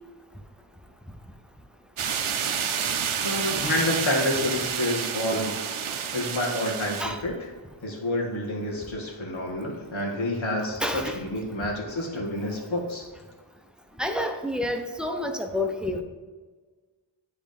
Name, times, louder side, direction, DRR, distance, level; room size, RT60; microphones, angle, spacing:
sound 1, 2.0-7.0, right 7 dB, 90° right, 0.6 m, -29 dB
voice 1, 3.2-5.6 6.1-7.3 7.8-13.0, left 1 dB, 75° left, -1 dB, 1.6 m, -28 dB
voice 2, 10.8-11.2 14.0-16.0, left 1 dB, ahead, 4 dB, 0.7 m, -29 dB
9.8 x 3.7 x 3.5 m, 1.4 s
wide cardioid pair, 60°, 47 cm